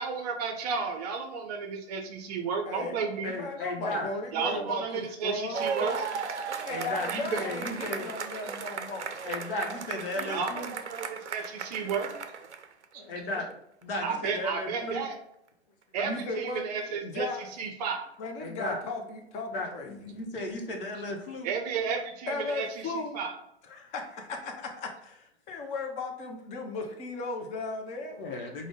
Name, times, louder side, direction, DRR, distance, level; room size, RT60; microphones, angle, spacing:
voice 1, 0.0-3.3 4.3-6.0 7.1-7.5 10.2-12.1 14.0-15.1 15.9-17.3 17.6-18.1 21.4-23.3, right 5 dB, 35° right, 4 dB, 0.6 m, -33 dB
voice 2, 2.6-3.0 3.4-6.1 6.6-9.2 13.3-13.5 16.0-17.5 18.2-20.0 22.3-23.2 23.6-25.2 25.5-28.2, left 3 dB, 20° left, 3 dB, 0.6 m, -36 dB
voice 3, 3.2-4.1 6.7-8.1 9.2-10.7 13.1-13.4 13.8-15.0 18.4-18.8 19.5-21.5 28.1-28.7, left 1 dB, 55° left, 2 dB, 1.0 m, -35 dB
sound 1, 5.5-12.8 13.8-13.9, right 6 dB, 85° right, 0.5 m, -36 dB
5.0 x 2.1 x 3.6 m, 0.76 s
figure-of-eight pair, 110°, 34 cm